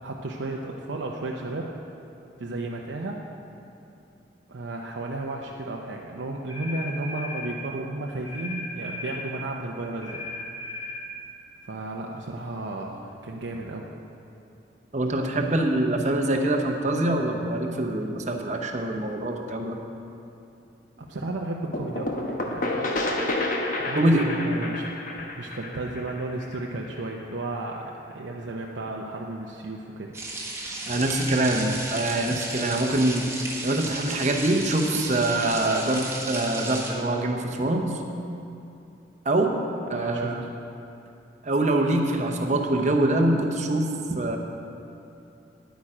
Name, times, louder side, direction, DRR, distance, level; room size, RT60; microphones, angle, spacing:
voice 1, 0.0-1.7 2.4-3.2 4.5-10.2 11.6-13.9 21.0-23.0 23.9-24.9 25.1-30.1 39.9-40.3, right 2 dB, 85° right, -1 dB, 0.7 m, -33 dB
sound 1, 6.5-7.5 8.2-9.2 10.0-11.0, left 2 dB, 85° left, 2.9 m, -36 dB
voice 2, 14.9-19.8 23.9-24.3 30.9-33.3 33.6-38.0 39.2-39.6 39.9-40.4 41.4-44.4, right 1 dB, 40° right, 2 dB, 0.8 m, -24 dB
sound 2, 21.7-27.3, left 2 dB, 45° left, 1.0 m, -30 dB
sound 3, 30.1-36.9, right 2 dB, 15° right, 1.3 m, -34 dB
10.5 x 8.7 x 5.0 m, 2.7 s
head